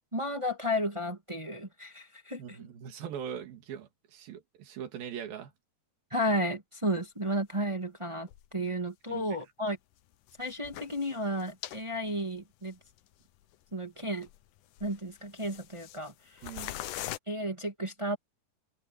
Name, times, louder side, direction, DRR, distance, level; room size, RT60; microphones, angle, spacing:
voice 1, 0.1-2.7 6.1-9.8 10.4-12.8 13.7-14.3 14.8-16.4 17.3-18.2, equal, 20° right, 0.8 m, -33 dB
voice 2, 2.4-5.5 9.1-9.2 16.4-16.8, right 9 dB, 65° right, 4.0 m, -41 dB
sound 1, 7.3-7.4 8.3-8.4 8.9-9.0 10.3-11.8 12.1-12.2 12.9-13.0 13.4-13.5 14.2-14.5 14.8-16.1 16.4-17.2, left 14 dB, 80° left, 1.8 m, -42 dB
omnidirectional pair, 4.7 m